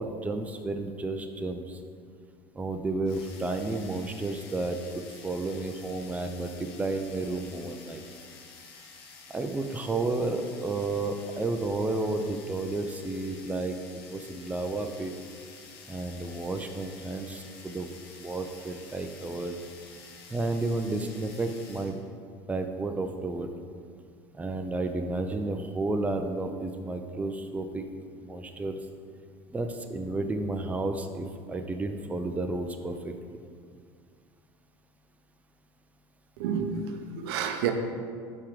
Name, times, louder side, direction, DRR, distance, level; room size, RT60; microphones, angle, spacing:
voice 1, 0.0-1.8 2.5-8.0 9.3-13.8 14.1-15.1 15.9-17.9 18.2-19.6 20.3-22.0 22.5-23.5 24.3-27.8 28.2-28.7 29.5-33.4, right 2 dB, 10° right, 6 dB, 0.4 m, -32 dB
sound 1, 3.1-22.0, left 5 dB, 80° left, 0.9 m, -50 dB
voice 2, 36.4-37.7, right 7 dB, 80° right, 6 dB, 0.6 m, -30 dB
5.7 x 3.5 x 4.9 m, 2.1 s
supercardioid pair, 90°, 13 cm